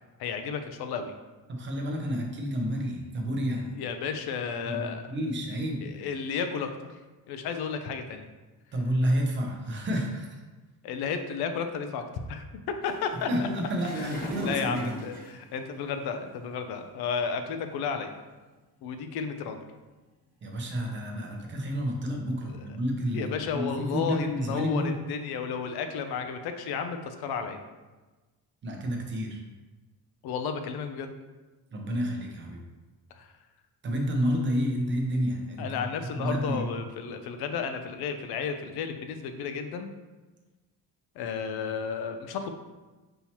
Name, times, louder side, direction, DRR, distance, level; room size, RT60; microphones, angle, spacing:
voice 1, 0.2-1.1 3.7-5.0 5.8-6.9 7.3-8.3 10.8-12.4 12.8-13.5 14.0-18.1 18.8-19.6 22.5-22.6 23.1-27.6 30.2-31.1 33.1-33.3 35.6-39.9 41.2-42.5, left 6 dB, 75° left, 7 dB, 0.5 m, -33 dB
voice 2, 1.5-3.7 4.7-5.9 8.7-10.4 13.1-15.0 20.4-25.0 28.6-29.4 31.7-32.6 33.8-36.7, equal, 30° right, 1 dB, 0.6 m, -30 dB
sound 1, 12.8-16.3 17.1-17.3 18.0-18.1 18.4-18.6 19.2-19.6 20.5-21.6 22.0-22.6 23.0-23.4 23.7-26.5, right 1 dB, 20° left, 1.2 m, -42 dB
5.5 x 2.9 x 2.9 m, 1.2 s
cardioid pair, 175°, 39 cm